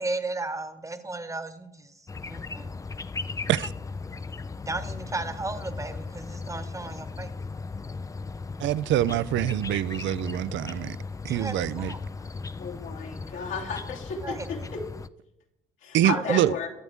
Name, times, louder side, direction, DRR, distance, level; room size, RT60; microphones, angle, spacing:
voice 1, 0.0-1.9 2.3-2.7 4.7-7.3 11.3-12.3 14.2-14.7 16.1-16.4, right 2 dB, 15° right, 1.1 m, -34 dB
sound 1, 2.1-15.1, left 4 dB, 15° left, 0.3 m, -37 dB
voice 2, 8.6-11.0 11.2-11.9 15.9-16.5, right 12 dB, 70° right, 0.4 m, -25 dB
voice 3, 12.6-14.8 15.8-16.7, left 5 dB, 80° left, 2.8 m, -34 dB
21.0 x 7.9 x 3.6 m
cardioid pair, 90°, 20 cm